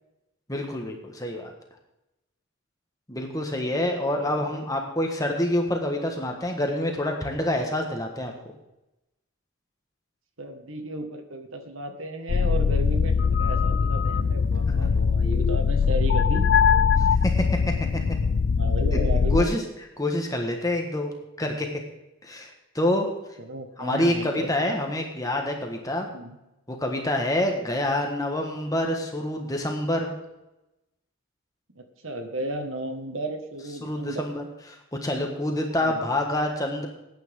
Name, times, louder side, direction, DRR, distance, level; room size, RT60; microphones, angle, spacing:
voice 1, 0.5-1.5 3.1-8.5 17.0-17.5 19.3-19.6 20.0-21.1 21.4-21.7 22.2-23.1 23.8-26.1 26.7-30.1 33.8-34.5 35.0-36.9, left 1 dB, 15° left, 2 dB, 1.5 m, -27 dB
voice 2, 4.1-4.6 10.4-16.5 18.5-19.5 23.4-24.8 26.1-26.4 31.8-34.2 35.8-36.1, right 1 dB, 70° right, 5 dB, 1.8 m, -34 dB
sound 1, 12.3-19.4, left 6 dB, 55° left, 0.4 m, -22 dB
18.5 x 9.3 x 3.8 m, 0.94 s
head